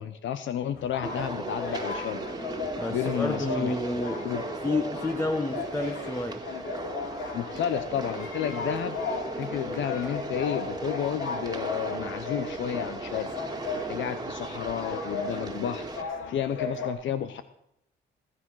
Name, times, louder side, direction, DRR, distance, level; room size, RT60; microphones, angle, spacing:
voice 1, 0.0-2.2 2.9-3.7 4.2-4.4 7.3-9.0 9.3-13.3 13.7-17.4, left 9 dB, 70° left, 0.9 m, -32 dB
sound 1, 0.7-16.9, left 4 dB, 90° left, 2.8 m, -36 dB
sound 2, 1.0-16.0, right 3 dB, 20° right, 2.1 m, -37 dB
voice 2, 2.8-4.4 4.6-6.5, left 2 dB, 10° left, 1.2 m, -30 dB
18.5 x 10.0 x 6.3 m
cardioid pair, 90°, 20 cm